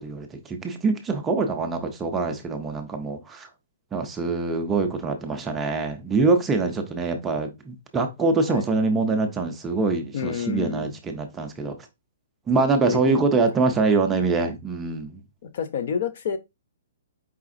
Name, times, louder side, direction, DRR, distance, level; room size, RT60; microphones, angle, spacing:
voice 1, 0.0-3.5 3.9-11.8 12.5-15.2, right 3 dB, 10° right, 0.4 m, -24 dB
voice 2, 10.1-10.9 12.9-13.2 15.5-16.4, left 7 dB, 40° left, 0.5 m, -28 dB
4.8 x 3.3 x 2.5 m
hypercardioid pair, 175°, 0 cm